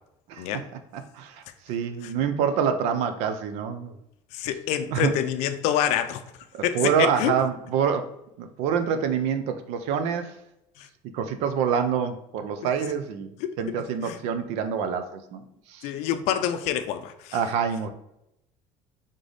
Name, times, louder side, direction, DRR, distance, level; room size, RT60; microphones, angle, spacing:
voice 1, 0.9-4.0 4.9-5.2 6.5-8.1 8.4-10.3 11.1-13.3 13.6-15.4 15.7-15.9 17.3-17.9, right 7 dB, 60° right, 0.6 m, -26 dB
voice 2, 4.3-6.2 6.6-7.3 10.8-10.9 13.4-13.5 14.0-14.2 15.8-17.4, left 10 dB, 65° left, 0.5 m, -27 dB
3.7 x 3.3 x 3.9 m
cardioid pair, 160°, 12 cm